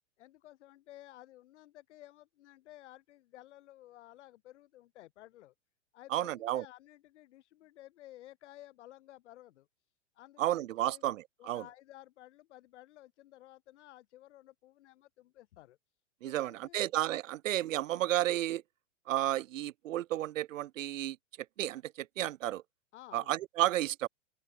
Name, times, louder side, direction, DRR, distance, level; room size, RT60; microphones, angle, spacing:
voice 1, 0.2-5.5 5.9-9.7 10.2-11.0 11.4-15.8 16.2-16.8 22.9-23.3, left 14 dB, 65° left, 3.4 m, -55 dB
voice 2, 6.1-6.6 10.4-11.6 16.2-18.6 19.1-21.2 21.6-22.6 23.1-24.1, right 14 dB, 80° right, 0.8 m, -32 dB
open air
hypercardioid pair, 140°, 38 cm